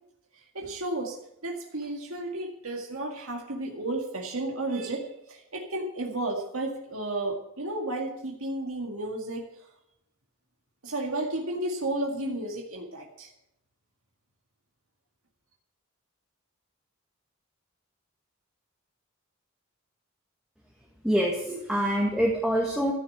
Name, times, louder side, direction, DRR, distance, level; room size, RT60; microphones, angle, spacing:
voice 1, 0.3-9.5 10.8-13.3, right 2 dB, 85° right, 1 dB, 2.1 m, -33 dB
voice 2, 21.0-22.9, equal, 5° right, -3 dB, 1.7 m, -25 dB
14.5 x 7.0 x 8.7 m, 0.83 s
head